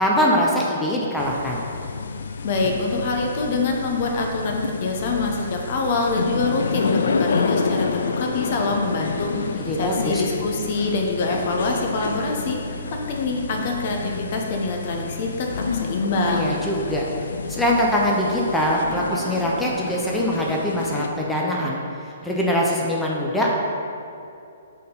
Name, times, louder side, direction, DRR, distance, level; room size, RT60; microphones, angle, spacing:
voice 1, 0.0-1.6 9.3-10.2 16.3-17.1 17.5-23.5, equal, 5° left, -4 dB, 0.7 m, -23 dB
sound 1, 1.2-21.1, left 4 dB, 60° left, 0.3 m, -29 dB
voice 2, 2.4-16.6, left 3 dB, 45° left, 1 dB, 0.8 m, -25 dB
6.6 x 4.0 x 3.8 m, 2.6 s
figure-of-eight pair, 125°, 0 cm